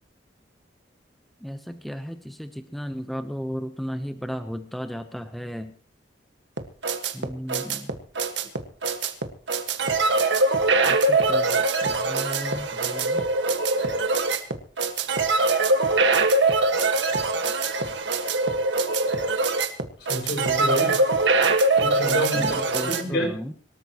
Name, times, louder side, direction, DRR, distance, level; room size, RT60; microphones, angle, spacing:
voice 1, 1.4-5.7 7.1-7.9 10.7-13.2 16.0-16.1 22.3-23.5, equal, ahead, 0.9 m, -35 dB
sound 1, 6.6-23.0, right 3 dB, 70° right, 1.8 m, -23 dB
voice 2, 20.1-21.0 21.8-23.4, equal, 70° left, 5.9 m, -28 dB
25.5 x 13.5 x 3.1 m
head